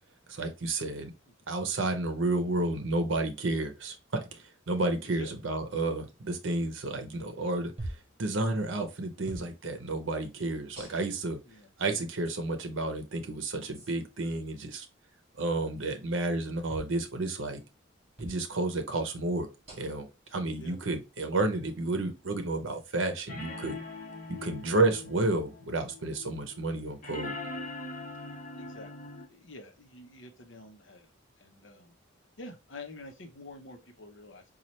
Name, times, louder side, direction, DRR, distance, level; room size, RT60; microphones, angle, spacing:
voice 1, 0.3-1.1 1.5-11.4 11.8-14.9 15.4-17.6 18.2-19.5 19.8-23.8 24.3-27.4, right 2 dB, 70° right, 6 dB, 0.7 m, -31 dB
sound 1, 7.8-8.1 9.2-9.5 10.7-11.3 12.2-12.4 13.7-13.9 16.7-16.9 18.2-18.4 19.7-20.0 21.2-21.3 22.7-22.9, right 1 dB, 30° right, 1.5 m, -43 dB
voice 2, 20.3-20.8 28.6-31.1 31.4-31.9 32.4-34.4, left 2 dB, 65° left, 5 dB, 0.7 m, -48 dB
sound 2, 21.7-21.8 23.3-29.3, left 2 dB, 40° left, 1.0 m, -42 dB
4.2 x 2.4 x 3.1 m, 0.27 s
head